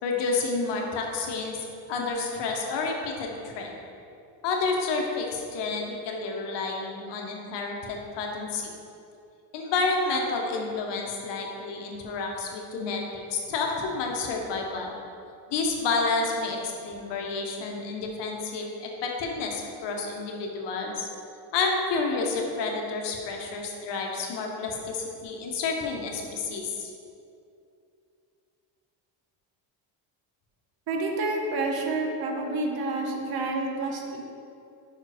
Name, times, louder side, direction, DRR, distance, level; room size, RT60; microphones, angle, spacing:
voice 1, 0.0-1.6 1.9-3.7 4.4-8.7 9.5-13.0 13.3-14.9 15.5-21.1 21.5-26.9, left 4 dB, 65° left, 0 dB, 1.1 m, -30 dB
voice 2, 30.9-34.2, right 2 dB, 50° right, 1 dB, 1.0 m, -29 dB
5.5 x 4.4 x 5.0 m, 2.6 s
cardioid pair, 125°, 46 cm